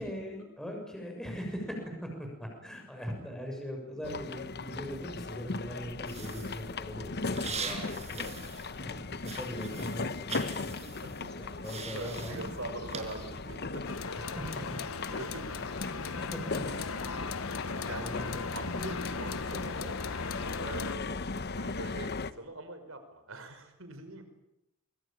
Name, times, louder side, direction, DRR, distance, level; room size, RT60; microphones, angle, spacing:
voice 1, 0.0-7.8 8.1-12.5 14.2-15.2 15.9-17.0 18.0-18.5 19.0-19.1, equal, 5° left, 1 dB, 6.9 m, -41 dB
sound 1, 4.0-22.3, left 3 dB, 50° left, 1.1 m, -38 dB
sound 2, 6.1-8.9 9.2-13.5, right 5 dB, 35° right, 5.4 m, -42 dB
voice 2, 11.9-14.0 14.3-16.2 16.5-17.4 17.8-20.0 20.5-24.2, right 2 dB, 70° right, 8 dB, 5.5 m, -44 dB
sound 3, 13.8-21.0, left 5 dB, 80° left, 1.1 m, -39 dB
25.0 x 24.0 x 9.0 m, 0.84 s
head